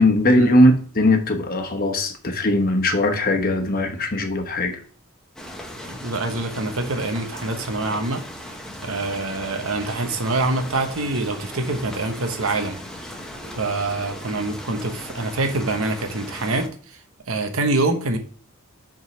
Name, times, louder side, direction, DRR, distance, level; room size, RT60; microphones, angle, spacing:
voice 1, 0.0-4.8, left 1 dB, 40° left, 4 dB, 1.0 m, -19 dB
sound 1, 5.4-16.7, equal, 5° left, 0.8 m, -37 dB
voice 2, 5.9-8.2 8.8-12.8 13.5-16.7 17.3-18.2, right 2 dB, 65° right, 6 dB, 1.1 m, -25 dB
7.0 x 3.8 x 5.1 m, 0.43 s
head